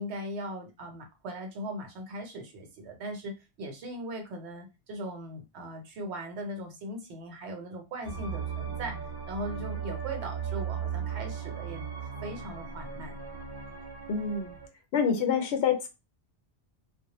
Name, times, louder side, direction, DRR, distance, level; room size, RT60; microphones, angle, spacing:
voice 1, 0.0-9.0 9.3-11.8 12.2-13.2, right 1 dB, 75° right, 0.9 m, -39 dB
sound 1, 8.0-14.7, right 7 dB, 40° right, 0.3 m, -37 dB
voice 2, 14.1-14.6 14.9-15.9, left 6 dB, 75° left, 0.9 m, -27 dB
2.1 x 2.0 x 2.9 m
omnidirectional pair, 1.1 m